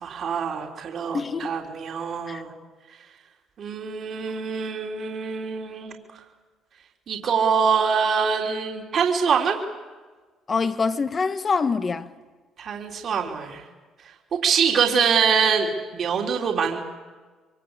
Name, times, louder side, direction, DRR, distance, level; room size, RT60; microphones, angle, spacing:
voice 1, 0.0-2.5 3.6-6.0 7.1-9.6 12.6-13.6 14.4-16.8, right 6 dB, 55° right, 3.5 m, -24 dB
voice 2, 10.5-12.1, left 4 dB, 35° left, 1.6 m, -24 dB
26.5 x 23.5 x 8.3 m
supercardioid pair, 85°, 0 cm